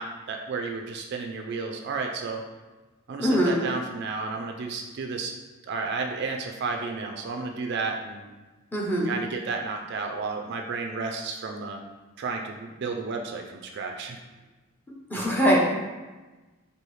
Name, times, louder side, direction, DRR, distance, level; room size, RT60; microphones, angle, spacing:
voice 1, 0.0-2.4 3.1-5.3 5.6-8.2 9.0-11.8 12.2-13.5 13.7-14.2, right 4 dB, 50° right, 3 dB, 0.3 m, -32 dB
voice 2, 3.2-3.6 8.7-9.0 15.1-15.6, equal, 10° left, -4 dB, 0.7 m, -22 dB
4.6 x 2.7 x 3.1 m, 1.2 s
head